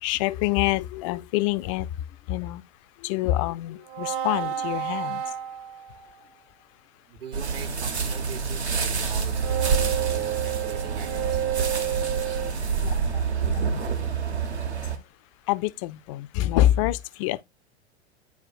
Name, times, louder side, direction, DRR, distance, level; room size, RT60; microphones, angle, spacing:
voice 1, 0.0-2.6 3.0-5.4 12.7-13.7 14.9-15.0 15.5-17.4, left 14 dB, 30° left, 0.4 m, -26 dB
sound 1, 3.9-6.1 9.3-12.5, right 10 dB, 45° right, 0.8 m, -30 dB
voice 2, 7.1-11.4, right 8 dB, 60° right, 1.2 m, -42 dB
sound 2, 7.3-15.0, right 5 dB, 75° right, 1.2 m, -27 dB
9.3 x 4.7 x 2.4 m
figure-of-eight pair, 95°, 33 cm